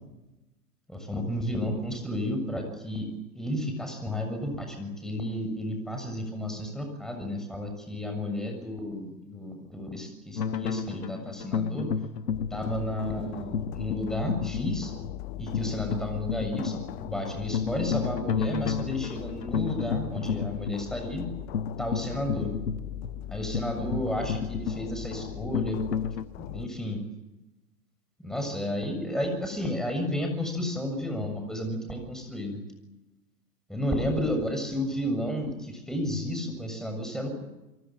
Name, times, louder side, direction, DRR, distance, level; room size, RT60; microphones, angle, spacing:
voice 1, 0.9-3.1 3.4-11.9 12.5-14.9 15.4-21.3 21.8-22.5 23.3-25.8 26.4-27.0 28.2-32.6 33.7-37.4, left 1 dB, ahead, 4 dB, 7.1 m, -32 dB
sound 1, 10.4-26.2, left 6 dB, 85° left, 1.4 m, -32 dB
sound 2, 12.3-26.7, left 14 dB, 40° left, 1.0 m, -40 dB
30.0 x 24.0 x 7.7 m, 1.0 s
hypercardioid pair, 120°, 48 cm